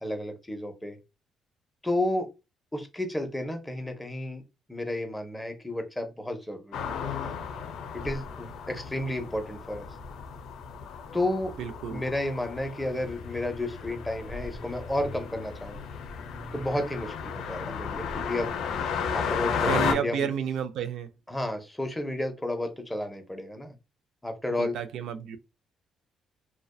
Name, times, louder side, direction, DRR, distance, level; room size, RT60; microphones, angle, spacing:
voice 1, 0.0-1.0 1.8-2.3 2.7-4.4 4.7-7.4 7.9-9.9 11.1-11.5 11.9-15.8 16.5-18.6 19.1-20.3 21.3-23.8 24.2-24.8, left 1 dB, 10° left, 0.6 m, -32 dB
sound 1, 6.7-19.9, left 6 dB, 85° left, 0.5 m, -34 dB
voice 2, 11.6-12.0 19.7-21.1 24.6-25.4, right 8 dB, 80° right, 0.3 m, -31 dB
2.5 x 2.2 x 2.2 m
cardioid pair, 90°, 0 cm